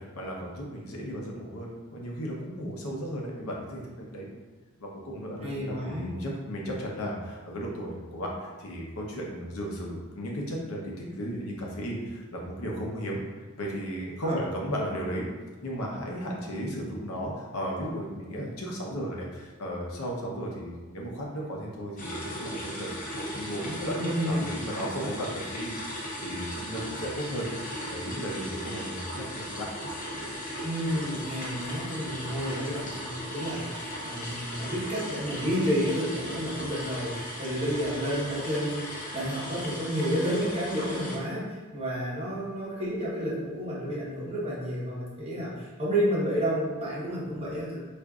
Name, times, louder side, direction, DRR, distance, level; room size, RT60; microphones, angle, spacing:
voice 1, 0.0-4.3 4.8-13.2 13.6-15.3 15.6-25.7 26.2-27.5 27.8-29.7, equal, 75° left, -2 dB, 0.7 m, -35 dB
voice 2, 5.4-6.1 14.2-14.4 23.9-24.4 25.0-25.1 30.6-47.8, equal, 30° right, -7 dB, 1.0 m, -30 dB
sound 1, 22.0-41.2, equal, 35° left, 0.7 m, -37 dB
4.9 x 2.5 x 2.3 m, 1.3 s
head